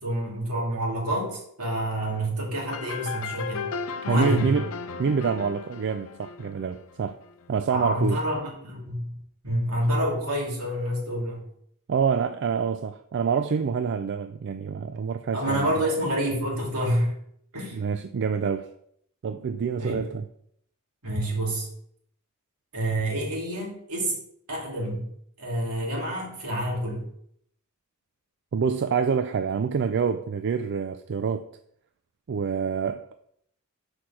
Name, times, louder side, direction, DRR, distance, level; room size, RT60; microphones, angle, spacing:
voice 1, 0.0-3.7 4.0-4.5 7.7-9.2 9.4-11.5 15.3-17.1 17.5-17.8 19.8-20.0 21.0-21.7 22.7-24.2 24.5-25.1 25.4-27.1, right 1 dB, 80° right, 2.7 m, -28 dB
sound 1, 2.7-7.3, left 5 dB, 65° left, 0.5 m, -35 dB
voice 2, 4.1-4.7 5.0-7.2 7.5-8.2 11.9-15.7 17.7-18.7 19.2-20.2 28.5-31.4 32.3-33.0, right 6 dB, 55° right, 0.4 m, -26 dB
6.1 x 4.9 x 5.8 m
head